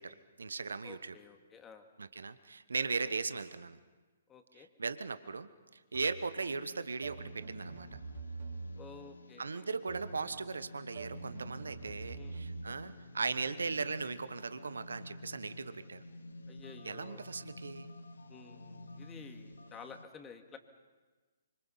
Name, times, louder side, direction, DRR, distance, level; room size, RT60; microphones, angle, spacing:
voice 1, 0.0-1.2 2.0-3.8 4.5-7.9 9.4-16.0 16.8-17.9, right 4 dB, 75° right, 13 dB, 1.1 m, -38 dB
voice 2, 0.8-1.9 3.0-3.1 4.3-4.7 8.8-9.7 12.2-12.4 16.5-17.2 18.3-20.6, left 5 dB, 15° left, 5 dB, 2.2 m, -52 dB
sound 1, 5.9-6.4 7.0-9.0 9.9-10.3 10.9-12.7, right 4 dB, 55° right, 3.6 m, -45 dB
sound 2, 6.4-20.0, left 2 dB, 75° left, 1.6 m, -51 dB
26.0 x 25.0 x 5.7 m, 1.3 s
figure-of-eight pair, 130°, 0 cm